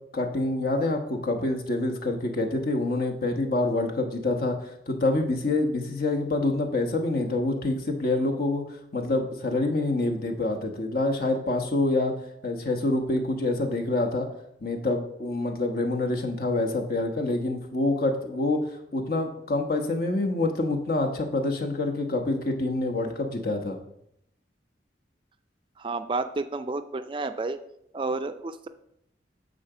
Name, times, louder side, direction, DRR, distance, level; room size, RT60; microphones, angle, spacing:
voice 1, 0.1-4.5 4.9-8.6 8.9-12.1 12.4-14.3 14.6-18.6 18.9-23.8, left 2 dB, 55° left, 3 dB, 1.1 m, -26 dB
voice 2, 25.8-27.6 27.9-28.7, right 3 dB, 30° right, 9 dB, 0.4 m, -30 dB
9.8 x 4.0 x 6.7 m, 0.78 s
head